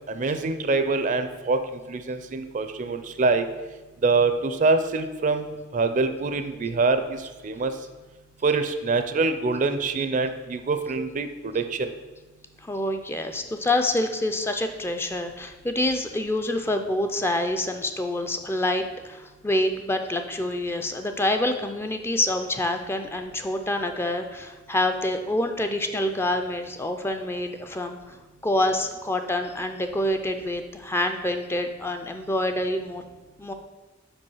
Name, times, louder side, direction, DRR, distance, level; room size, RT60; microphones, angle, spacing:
voice 1, 0.1-1.6 1.9-3.5 4.0-5.5 5.7-7.7 8.4-11.9, right 3 dB, 45° right, 9 dB, 0.5 m, -24 dB
voice 2, 12.6-28.0 28.4-33.0 33.4-33.5, left 1 dB, 15° left, 6 dB, 0.4 m, -27 dB
5.3 x 4.9 x 5.5 m, 1.2 s
head